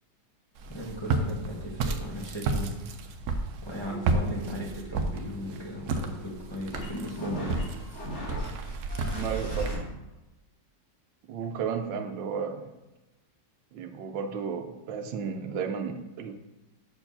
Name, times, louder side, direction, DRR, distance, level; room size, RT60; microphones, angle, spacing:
Walk footsteps, 0.6-9.7, right 3 dB, 65° right, 1.1 m, -32 dB
voice 1, 0.7-2.7 3.6-7.6, equal, 15° left, -3 dB, 1.1 m, -36 dB
sound 1, 3.9-9.8, left 1 dB, 40° left, 1.7 m, -41 dB
voice 2, 9.1-9.7 11.3-12.7 13.7-16.3, right 6 dB, 90° right, 5 dB, 1.3 m, -33 dB
6.3 x 4.6 x 5.4 m, 1.0 s
omnidirectional pair, 2.0 m